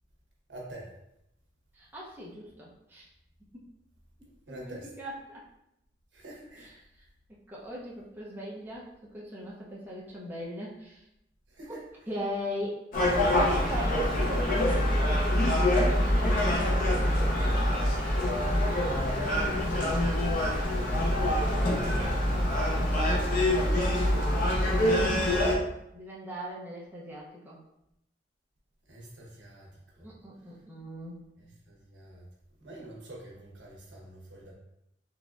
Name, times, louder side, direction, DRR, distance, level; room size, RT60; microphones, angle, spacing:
voice 1, 0.5-0.9 4.5-4.9 6.1-6.7 11.5-11.8 17.8-18.1 22.2-22.9 28.9-29.7 30.0-30.1 31.4-32.2 32.6-34.5, right 1 dB, 75° right, -2 dB, 1.1 m, -45 dB
voice 2, 1.7-3.1 3.5-3.6 4.5-5.4 6.6-6.8 7.5-11.0 11.7-11.8 12.1-12.9 13.3-16.8 19.1-20.0 21.4-22.5 25.9-27.6 30.0-31.2, equal, 10° right, -6 dB, 0.7 m, -39 dB
Gull seagull, 12.9-25.5, left 1 dB, 50° left, 0.8 m, -25 dB
4.0 x 3.5 x 2.4 m, 0.82 s
head